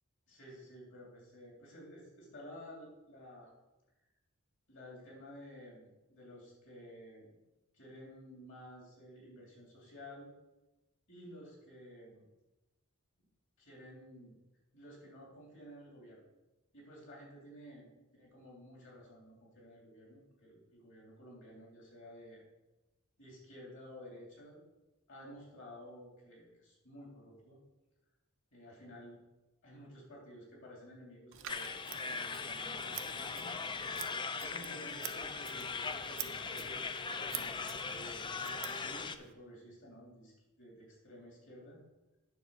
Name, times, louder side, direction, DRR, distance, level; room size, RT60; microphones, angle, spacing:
voice 1, 0.3-3.5 4.7-7.3 7.7-10.3 11.1-12.2 13.6-14.3 14.7-16.2 16.7-17.9 18.1-22.4 23.2-24.6 25.1-27.6 28.5-29.2 29.6-31.7 32.0-33.5 34.4-36.9 37.2-41.8, equal, 60° left, -2 dB, 3.3 m, -53 dB
Scissors, 31.3-39.3, right 12 dB, 60° right, 0.6 m, -49 dB
sound 1, 31.5-39.2, left 4 dB, 20° left, 0.4 m, -40 dB
9.3 x 4.2 x 7.1 m, 1.0 s
head